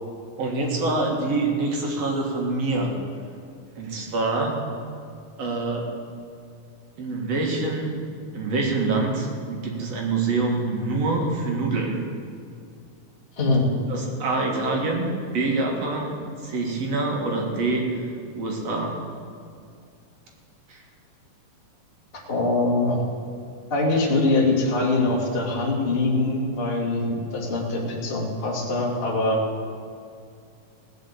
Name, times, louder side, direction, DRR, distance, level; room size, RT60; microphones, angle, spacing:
voice 1, 0.4-2.9 3.8-4.6 5.4-5.9 7.0-8.0 8.3-12.0 13.9-17.9 18.4-19.0 20.7-20.8, right 3 dB, 55° right, 0 dB, 2.8 m, -25 dB
voice 2, 22.3-23.0 23.7-29.4, left 2 dB, 20° left, -2 dB, 1.9 m, -23 dB
18.5 x 6.4 x 8.3 m, 2.3 s
omnidirectional pair, 3.7 m